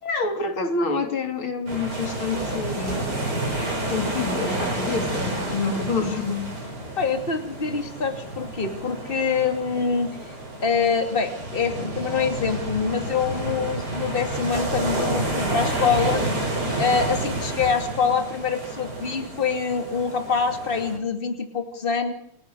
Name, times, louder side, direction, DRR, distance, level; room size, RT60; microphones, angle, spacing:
voice 1, 0.0-6.5, left 4 dB, 80° left, 3.8 m, -28 dB
sound 1, 1.7-21.0, right 1 dB, 50° right, 6.8 m, -30 dB
voice 2, 7.0-10.3 10.6-16.3 16.8-22.1, left 5 dB, 25° left, 2.7 m, -25 dB
28.5 x 11.5 x 8.0 m
omnidirectional pair, 2.3 m